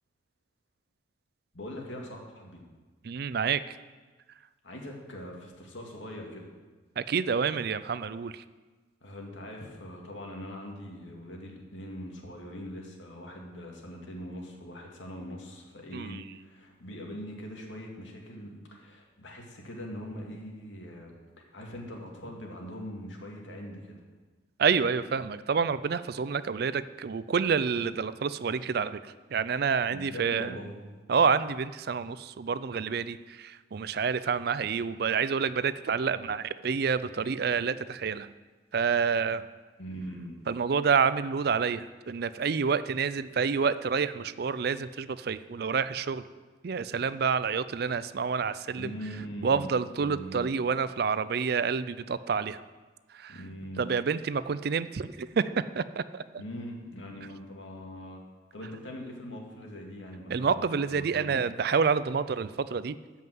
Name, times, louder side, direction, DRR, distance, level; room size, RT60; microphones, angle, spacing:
voice 1, 1.5-2.6 4.6-6.5 9.0-21.1 21.5-24.0 29.9-30.8 39.8-40.4 48.8-50.6 53.3-53.9 56.4-58.2 58.5-61.4, equal, 85° left, 0 dB, 2.2 m, -42 dB
voice 2, 3.0-3.8 7.0-8.4 15.9-16.2 24.6-29.0 29.3-30.6 31.1-38.3 38.7-39.4 40.5-46.2 46.6-48.9 49.4-52.6 53.1-53.4 53.8-56.2 60.3-63.0, right 6 dB, 55° right, 15 dB, 0.4 m, -28 dB
13.5 x 5.5 x 7.8 m, 1.3 s
head